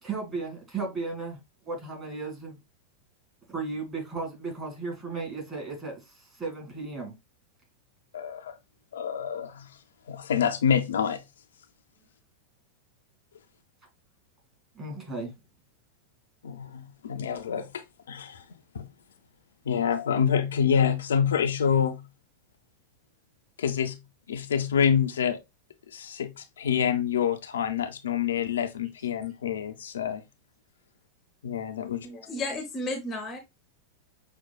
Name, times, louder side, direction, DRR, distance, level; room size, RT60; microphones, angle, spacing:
voice 1, 0.0-1.4 1.6-2.6 3.5-7.1 14.8-15.3, right 3 dB, 20° right, 2.0 m, -35 dB
voice 2, 8.1-8.5 8.9-9.7 10.1-11.2 16.4-18.4 18.7-18.9 19.7-22.1 23.6-24.0 24.3-25.4 25.9-30.2 31.4-32.1, left 8 dB, 65° left, 0.4 m, -27 dB
voice 3, 32.0-33.4, left 2 dB, 20° left, 0.6 m, -33 dB
5.9 x 2.1 x 2.3 m
figure-of-eight pair, 90°, 0 cm